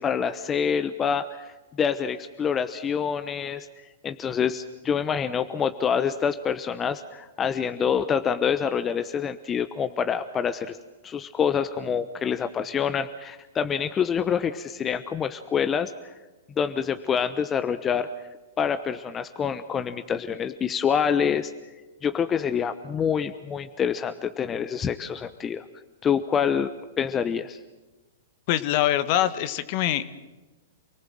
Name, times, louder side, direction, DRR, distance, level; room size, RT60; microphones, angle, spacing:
voice 1, 0.0-1.5 1.8-3.7 4.0-10.8 11.0-15.9 16.6-18.1 18.6-21.5 22.0-25.6 26.0-26.7 27.0-27.6, left 7 dB, 20° left, 10 dB, 1.0 m, -26 dB
voice 2, 28.5-30.1, left 12 dB, 50° left, 13 dB, 1.5 m, -24 dB
28.5 x 19.0 x 7.7 m, 1.1 s
hypercardioid pair, 110°, 0 cm